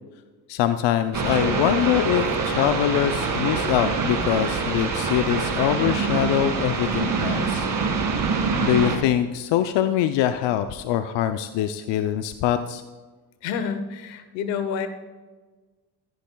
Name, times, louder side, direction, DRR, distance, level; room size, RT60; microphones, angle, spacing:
voice 1, 0.5-7.7 8.6-12.8, left 11 dB, 70° left, 9 dB, 0.7 m, -23 dB
sound 1, 1.1-9.0, right 4 dB, 45° right, 2.1 m, -25 dB
voice 2, 13.4-14.9, left 6 dB, 90° left, 10 dB, 1.1 m, -28 dB
14.0 x 10.5 x 2.3 m, 1.3 s
supercardioid pair, 65°, 45 cm